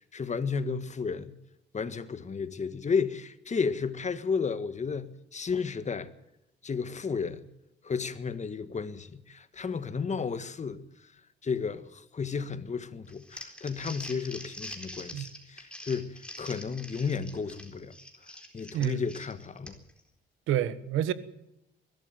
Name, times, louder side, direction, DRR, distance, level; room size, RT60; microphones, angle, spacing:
voice 1, 0.0-1.4 1.7-6.1 6.6-7.5 7.8-10.8 11.4-17.9 18.5-19.8, left 5 dB, 35° left, 1.6 m, -33 dB
Crumpling crinkling, 13.1-20.0, left 1 dB, 5° left, 4.1 m, -45 dB
voice 2, 20.5-21.1, right 11 dB, 85° right, 1.4 m, -28 dB
22.0 x 13.0 x 9.2 m
cardioid pair, 90°, 20 cm